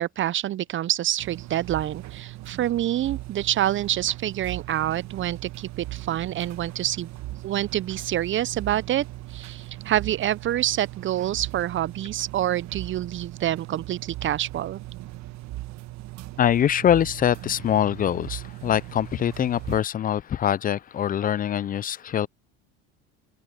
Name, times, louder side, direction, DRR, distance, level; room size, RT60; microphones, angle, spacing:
voice 1, 0.0-7.1 7.4-9.0 9.3-14.8, right 12 dB, 40° right, 0.6 m, -27 dB
sound 1, 1.2-19.8, right 17 dB, 55° right, 1.5 m, -39 dB
voice 2, 16.4-22.3, left 10 dB, 25° left, 0.4 m, -23 dB
open air
supercardioid pair, 85°, 32 cm